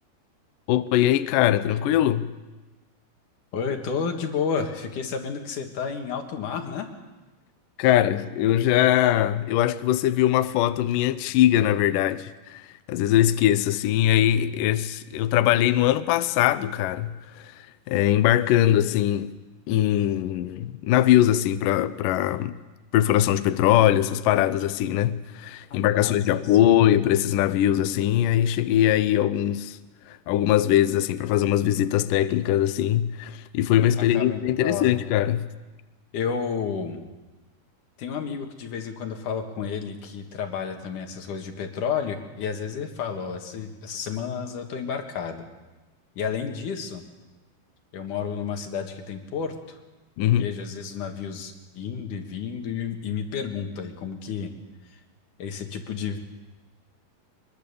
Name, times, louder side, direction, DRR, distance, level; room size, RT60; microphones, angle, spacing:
voice 1, 0.7-2.3 7.8-12.6 12.9-17.4 17.9-19.3 19.7-22.6 22.9-29.8 30.1-35.5 50.2-50.5, left 12 dB, 75° left, 2.0 m, -21 dB
voice 2, 3.5-6.9 25.7-27.0 34.0-34.9 36.1-37.1 38.0-45.4 46.2-47.0 47.9-49.8 50.2-54.5 54.9-55.0 55.4-56.2, left 6 dB, 55° left, 2.8 m, -31 dB
23.5 x 22.0 x 7.0 m
omnidirectional pair, 4.9 m